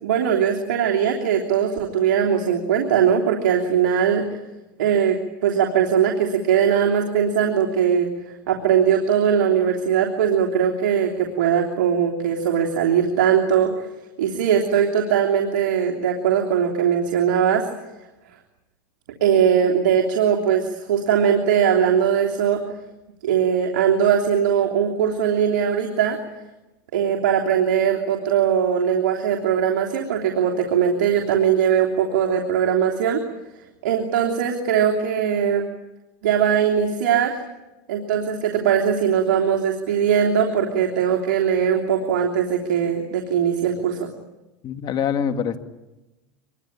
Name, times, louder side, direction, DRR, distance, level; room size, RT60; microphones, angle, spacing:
voice 1, 0.0-4.2 4.8-8.1 8.5-17.7 19.2-22.6 23.2-26.2 26.9-33.2 33.8-35.7 36.2-37.3 37.9-44.1, right 8 dB, 85° right, 0 dB, 3.2 m, -20 dB
voice 2, 44.6-45.6, left 8 dB, 45° left, 8 dB, 2.4 m, -24 dB
26.0 x 22.5 x 8.8 m, 1.0 s
supercardioid pair, 105°, 10 cm